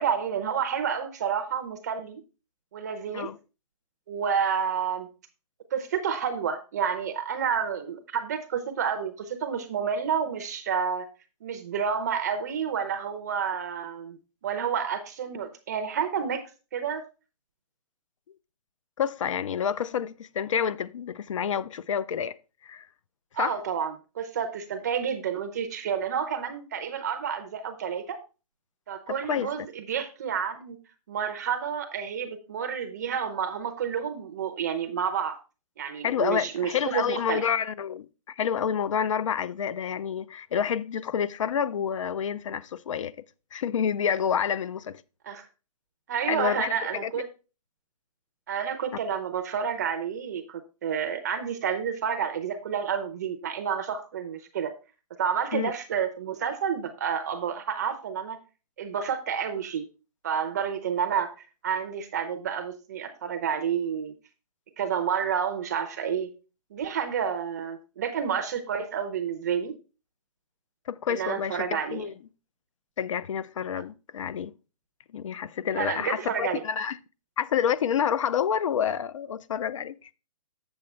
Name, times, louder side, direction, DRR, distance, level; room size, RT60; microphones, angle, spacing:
voice 1, 0.0-2.2 2.7-3.3 4.1-5.1 5.7-11.1 11.4-14.2 14.4-16.4 16.7-17.0 23.3-28.2 28.9-30.8 31.1-35.4 35.8-37.4 45.2-45.4 46.1-47.3 48.5-54.7 55.2-58.4 58.8-59.9 60.2-61.3 61.6-64.1 64.8-66.3 66.7-69.7 71.1-72.1 75.7-76.6, right 7 dB, 25° right, 0.5 m, -29 dB
voice 2, 19.0-22.4 22.6-22.9 23.4-23.6 29.1-29.7 36.0-43.1 43.5-45.0 46.3-47.1 55.5-55.7 70.9-72.1 73.0-74.5 75.1-77.0 77.4-80.1, left 8 dB, 55° left, 0.4 m, -28 dB
7.8 x 7.1 x 3.2 m
hypercardioid pair, 170°, 20 cm